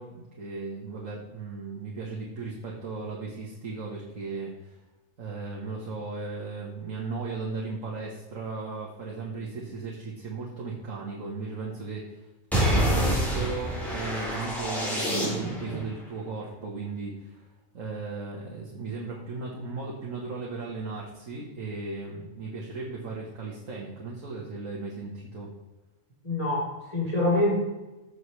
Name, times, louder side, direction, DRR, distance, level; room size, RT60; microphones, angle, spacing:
voice 1, 0.0-4.8 5.2-12.3 12.5-17.5 17.7-25.5, right 3 dB, 80° right, -3 dB, 1.9 m, -36 dB
sound 1, 12.5-15.8, right 1 dB, ahead, 3.5 m, -26 dB
voice 2, 26.2-27.5, left 2 dB, 25° left, -6 dB, 4.1 m, -25 dB
15.0 x 6.6 x 3.3 m, 1.1 s
omnidirectional pair, 1.3 m